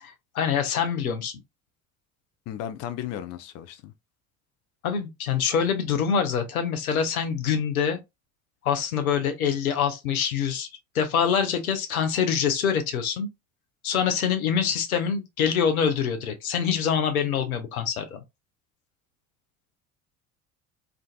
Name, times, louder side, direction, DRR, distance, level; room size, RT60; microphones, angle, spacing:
voice 1, 0.0-1.3 4.8-8.0 8.6-10.7 10.9-13.3 13.8-18.2, left 7 dB, 80° left, 0.7 m, -25 dB
voice 2, 2.5-3.9, left 10 dB, 40° left, 0.4 m, -35 dB
2.5 x 2.5 x 2.2 m
figure-of-eight pair, 65°, 42 cm